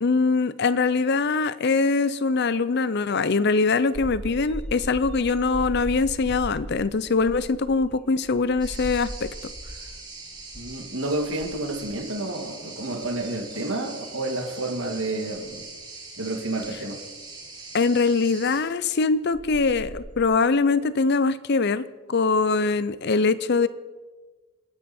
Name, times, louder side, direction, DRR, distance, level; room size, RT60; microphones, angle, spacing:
voice 1, 0.0-9.3 17.7-23.7, left 4 dB, 50° left, 16 dB, 0.6 m, -23 dB
sound 1, 3.9-10.0 10.3-10.7 11.1-12.1 12.7-14.9 15.3-15.6 16.6-16.7 18.9-19.0 19.3-20.2, equal, 5° left, 5.4 m, -38 dB
sound 2, 8.6-18.6, right 3 dB, 20° right, 4.1 m, -42 dB
voice 2, 10.5-15.6 16.2-17.0, right 2 dB, 65° right, 4 dB, 2.2 m, -30 dB
28.5 x 10.0 x 4.3 m, 1.3 s
head